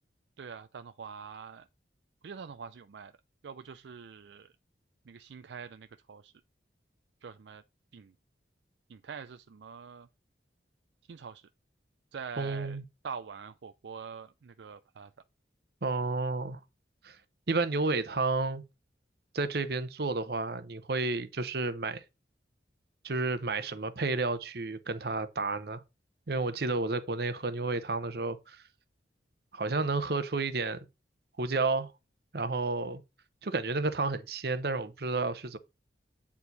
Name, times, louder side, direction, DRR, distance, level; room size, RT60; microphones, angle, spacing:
voice 1, 0.4-1.7 2.2-3.1 3.4-4.5 5.0-6.3 7.2-7.6 7.9-8.1 8.9-10.1 11.1-11.5 12.1-12.8 13.0-15.1, right 6 dB, 75° right, 0.4 m, -44 dB
voice 2, 12.4-12.8 15.8-16.6 17.0-17.2 17.5-18.6 19.3-22.0 23.0-25.8 26.3-28.6 29.5-30.9 31.4-31.9 32.3-33.0 33.4-35.6, right 3 dB, 60° right, 0.8 m, -31 dB
8.4 x 4.6 x 4.0 m
head